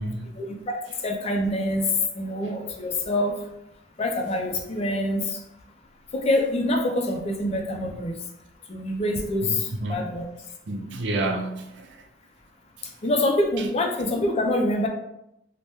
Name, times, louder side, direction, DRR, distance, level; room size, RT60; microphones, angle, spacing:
voice 1, 0.4-1.9 2.1-3.4 4.0-5.4 6.1-8.2 8.7-10.3 13.0-14.9, left 1 dB, 35° left, 2 dB, 0.4 m, -25 dB
voice 2, 9.4-10.0 10.7-11.9, right 2 dB, 70° right, 3 dB, 0.5 m, -29 dB
3.2 x 2.1 x 2.9 m, 0.83 s
head